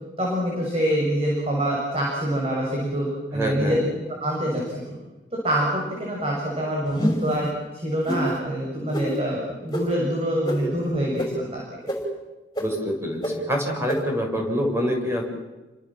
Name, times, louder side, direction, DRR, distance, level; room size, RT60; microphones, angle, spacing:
voice 1, 0.2-3.1 3.3-3.8 4.2-4.6 5.4-7.5 7.7-11.6, equal, 30° right, -3 dB, 7.3 m, -25 dB
voice 2, 3.3-3.9 12.6-15.2, equal, 15° right, 1 dB, 7.0 m, -26 dB
sound 1, 6.9-7.4 8.1-8.2 8.9-9.1 9.7-9.8 10.5-10.6 11.2-11.3 11.9-12.0 12.6-12.7 13.2-13.3 13.9-14.0, equal, 20° left, 6.0 m, -25 dB
29.5 x 26.0 x 7.7 m, 1.1 s
head